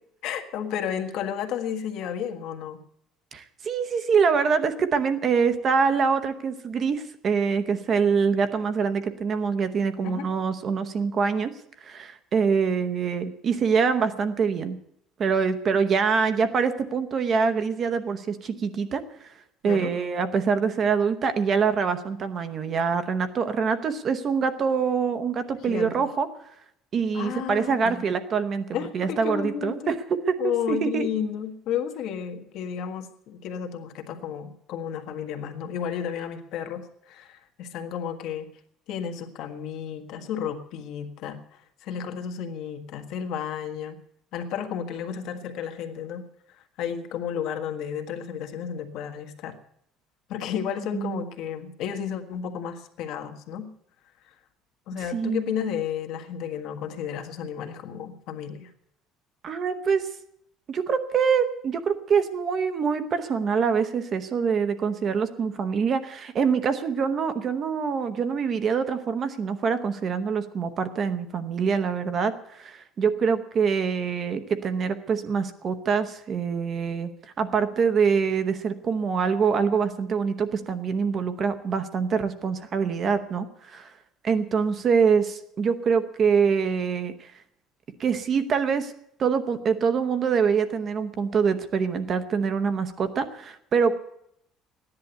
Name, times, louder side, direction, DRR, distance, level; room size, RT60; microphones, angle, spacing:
voice 1, 0.2-2.8 10.0-10.3 19.6-19.9 25.7-26.0 27.1-28.1 28.7-29.9 30.4-38.5 38.9-44.0 44.3-46.2 46.5-49.6 50.3-53.7 54.9-58.7, left 8 dB, 55° left, 5 dB, 1.6 m, -32 dB
voice 2, 3.3-11.5 11.8-14.8 15.2-19.0 19.6-26.3 26.9-31.1 50.9-51.2 55.1-55.5 59.4-60.0 60.7-77.1 77.4-83.9 84.2-87.3 88.0-88.9 89.2-93.9, right 6 dB, 30° right, 10 dB, 0.9 m, -25 dB
14.5 x 10.5 x 8.1 m, 0.74 s
cardioid pair, 180°, 0 cm